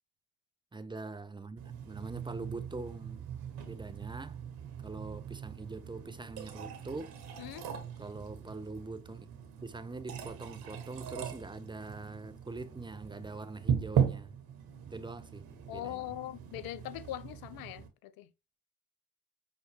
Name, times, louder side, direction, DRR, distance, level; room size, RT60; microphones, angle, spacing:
voice 1, 0.7-3.2 3.6-4.4 4.8-7.1 8.0-9.3 9.6-14.4 14.9-15.5 15.7-16.0, right 3 dB, 10° right, 0.5 m, -43 dB
sound 1, 1.6-17.9, right 8 dB, 65° right, 1.0 m, -39 dB
voice 2, 15.7-18.3, left 13 dB, 60° left, 0.6 m, -41 dB
5.6 x 2.1 x 3.3 m
hypercardioid pair, 45°, 41 cm